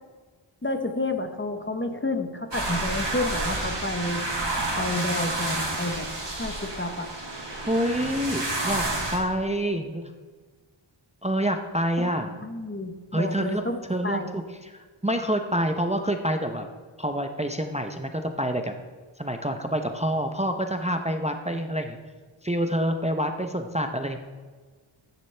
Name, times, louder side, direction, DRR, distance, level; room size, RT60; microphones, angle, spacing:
voice 1, 0.6-4.3 4.6-6.1 6.4-7.1 12.0-12.1 12.4-14.4, left 2 dB, 25° left, 7 dB, 0.9 m, -30 dB
sound 1, 2.5-9.2, right 2 dB, 55° right, 2.7 m, -30 dB
voice 2, 7.6-8.8 9.1-10.0 11.2-12.3 13.1-13.6 13.9-16.7 17.0-18.7 19.2-22.0 22.4-24.2, equal, 15° right, 5 dB, 0.7 m, -27 dB
13.5 x 9.8 x 3.4 m, 1.4 s
wide cardioid pair, 60°, 50 cm